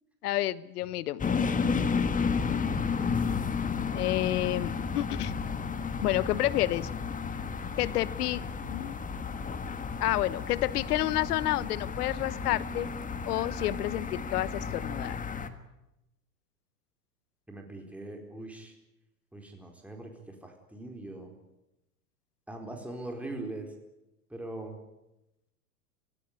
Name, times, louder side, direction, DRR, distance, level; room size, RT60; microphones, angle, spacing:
voice 1, 0.2-1.3 3.9-5.3 6.0-6.9 7.8-9.0 10.0-12.9 13.2-15.2, left 15 dB, 70° left, 19 dB, 1.2 m, -29 dB
sound 1, 1.2-15.5, left 5 dB, 15° left, 1.7 m, -32 dB
voice 2, 17.5-18.7 19.3-20.1 20.4-21.3 22.5-23.7 24.3-24.8, right 2 dB, 5° right, 2 dB, 4.5 m, -41 dB
26.5 x 16.0 x 9.8 m, 0.92 s
hypercardioid pair, 110°, 48 cm